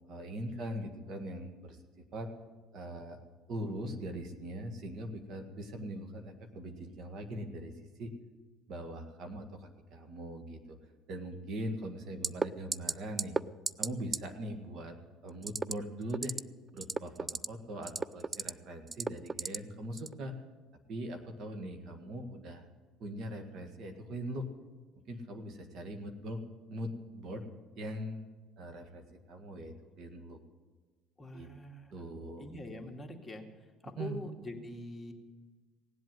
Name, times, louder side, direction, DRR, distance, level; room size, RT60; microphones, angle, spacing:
voice 1, 0.0-1.8 2.1-2.3 2.7-3.2 3.5-7.7 8.0-8.1 8.7-10.8 11.1-13.4 13.8-15.0 15.2-16.3 16.7-20.3 20.9-22.7 23.0-24.5 25.1-26.4 26.7-27.4 27.8-28.3 28.6-30.4 31.3-31.5 31.9-32.5 34.0-34.2, right 1 dB, 55° right, 5 dB, 1.9 m, -41 dB
sound 1, 12.2-12.5 12.7-12.9 13.2-13.4 13.7-13.9 14.1-14.2 15.4-15.7 16.1-16.4 16.8-17.5 17.8-18.5 18.9-19.6 20.0-20.1, right 3 dB, 20° right, 0.4 m, -32 dB
voice 2, 31.2-31.9 32.4-33.5 33.8-35.1, left 1 dB, 10° left, 0 dB, 2.3 m, -44 dB
18.0 x 7.9 x 9.3 m, 1.4 s
supercardioid pair, 95°, 0 cm